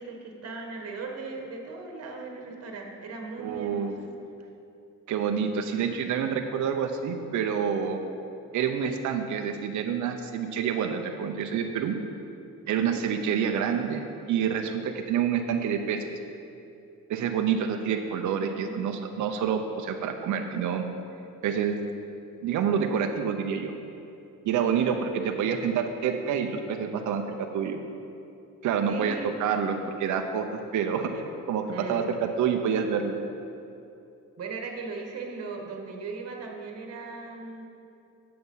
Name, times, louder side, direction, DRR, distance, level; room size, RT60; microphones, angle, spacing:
voice 1, 0.0-4.1 12.7-13.0 17.9-18.8 24.6-25.0 28.9-29.3 31.7-32.1 34.4-37.6, right 4 dB, 50° right, 2 dB, 1.5 m, -38 dB
voice 2, 3.4-3.9 5.1-8.0 8.5-12.0 12.7-16.0 17.1-20.8 21.4-21.8 22.4-23.7 24.4-27.8 28.6-30.5 30.7-33.2, right 7 dB, 65° right, 5 dB, 0.7 m, -28 dB
8.0 x 7.7 x 5.6 m, 2.7 s
cardioid pair, 110°, 32 cm